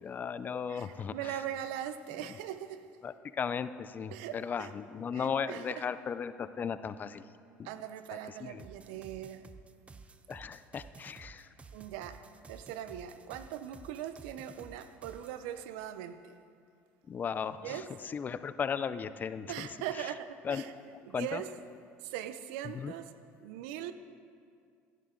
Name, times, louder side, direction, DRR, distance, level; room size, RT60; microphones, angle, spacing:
voice 1, 0.0-1.4 2.2-2.4 3.0-7.3 7.6-7.7 8.4-8.6 10.3-11.5 17.1-19.7 20.4-20.6 20.9-21.4 22.7-22.9, left 6 dB, 30° left, 13 dB, 0.5 m, -36 dB
voice 2, 0.7-2.9 4.1-4.7 5.1-5.8 7.6-9.5 11.7-16.4 17.6-17.9 19.5-20.7 21.0-21.5 22.0-23.1 23.4-23.9, right 11 dB, 85° right, 11 dB, 0.6 m, -41 dB
sound 1, 8.6-15.4, right 4 dB, 20° right, 0.7 m, -53 dB
16.0 x 11.0 x 3.8 m, 2.3 s
supercardioid pair, 105°, 6 cm